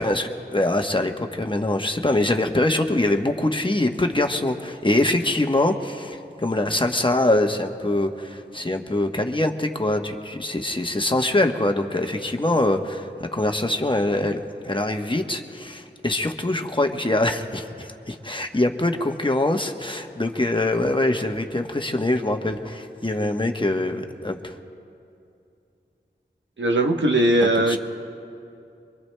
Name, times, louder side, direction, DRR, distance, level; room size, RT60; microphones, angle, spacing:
voice 1, 0.0-24.5 27.7-27.8, left 1 dB, 25° left, 4 dB, 1.0 m, -24 dB
voice 2, 26.6-27.8, right 1 dB, 80° right, 3 dB, 1.0 m, -19 dB
24.5 x 24.0 x 2.2 m, 2.6 s
wide cardioid pair, 45°, 19 cm